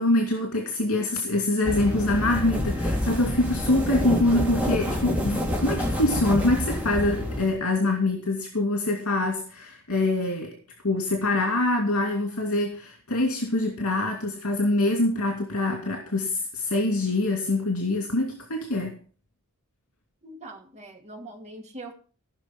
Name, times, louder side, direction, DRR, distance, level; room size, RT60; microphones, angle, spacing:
voice 1, 0.0-10.6 10.8-19.0, left 2 dB, 80° left, 2 dB, 2.6 m, -25 dB
sound 1, 1.6-7.5, left 1 dB, 5° right, 2.5 m, -27 dB
voice 2, 20.2-21.9, right 2 dB, 30° right, 2 dB, 2.5 m, -42 dB
16.0 x 6.2 x 6.2 m, 0.40 s
head